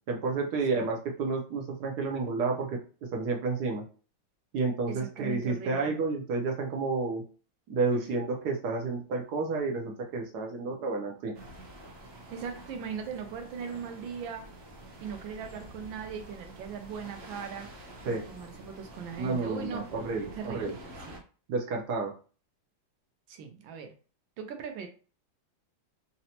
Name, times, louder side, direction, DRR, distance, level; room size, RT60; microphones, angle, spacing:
voice 1, 0.1-2.7 3.1-3.8 4.5-7.2 7.7-11.3 18.0-18.3 19.2-20.7 21.5-22.1, right 3 dB, 70° right, 1 dB, 1.1 m, -30 dB
voice 2, 4.9-5.9 7.9-8.1 12.3-14.5 15.0-17.7 18.0-19.9 20.3-20.8 21.1-21.2 23.3-23.9 24.4-24.9, right 7 dB, 85° right, 5 dB, 1.4 m, -39 dB
sound 1, 11.3-21.2, right 1 dB, 50° right, 0.8 m, -48 dB
4.0 x 2.1 x 2.8 m, 0.38 s
omnidirectional pair, 2.1 m